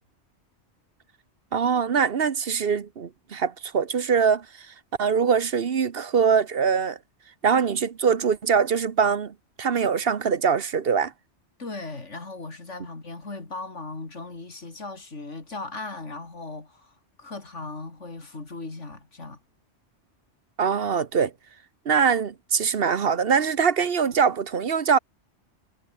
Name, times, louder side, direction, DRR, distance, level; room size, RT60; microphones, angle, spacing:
voice 1, 1.5-4.5 5.0-7.0 7.4-11.1 20.6-21.3 21.8-25.0, right 6 dB, 55° right, 1.2 m, -23 dB
voice 2, 11.6-19.4, left 3 dB, 85° left, 3.8 m, -38 dB
omnidirectional pair, 1.2 m